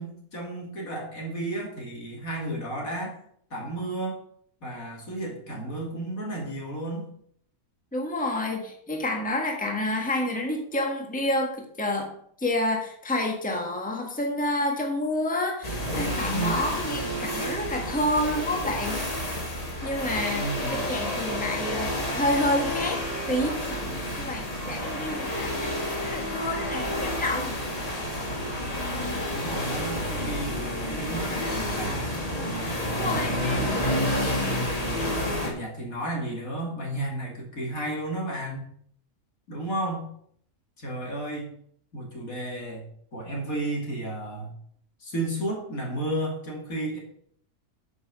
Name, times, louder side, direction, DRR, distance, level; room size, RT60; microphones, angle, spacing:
voice 1, 0.0-3.2 3.5-4.2 4.6-7.1 20.3-20.9 29.3-32.2 32.9-34.1 35.4-38.7 39.5-40.1 40.8-41.5 41.9-42.8 43.1-44.5 45.0-47.0, right 1 dB, 70° left, -1 dB, 3.3 m, -33 dB
voice 2, 7.9-19.0 19.8-27.6 32.9-34.2, left 1 dB, 5° left, 2 dB, 1.6 m, -29 dB
sound 1, 15.6-35.5, equal, 25° left, 2.4 m, -30 dB
9.3 x 6.2 x 6.4 m, 0.63 s
omnidirectional pair, 1.5 m